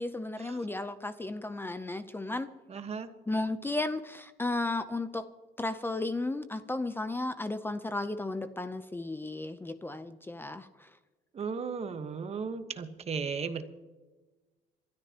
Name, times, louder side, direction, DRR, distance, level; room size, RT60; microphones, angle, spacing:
voice 1, 0.0-2.5 3.3-5.3 5.6-10.9, left 2 dB, 15° left, 11 dB, 0.6 m, -34 dB
voice 2, 2.7-3.1 11.3-13.6, right 5 dB, 40° right, 9 dB, 1.3 m, -35 dB
27.0 x 13.0 x 2.9 m, 1.2 s
cardioid pair, 110°, 17 cm